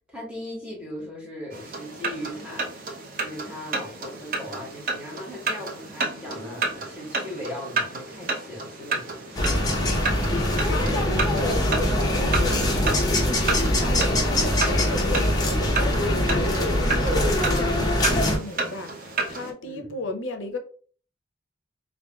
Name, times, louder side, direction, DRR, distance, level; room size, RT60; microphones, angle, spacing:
voice 1, 0.1-2.9 3.2-9.6 19.6-20.0, left 1 dB, 5° right, 1.2 m, -38 dB
sound 1, 1.5-19.5, right 3 dB, 45° right, 0.6 m, -32 dB
sound 2, 9.4-18.4, left 1 dB, 20° left, 0.7 m, -23 dB
voice 2, 10.3-12.6 13.1-20.6, left 2 dB, 80° left, 0.5 m, -35 dB
4.4 x 2.5 x 2.2 m
head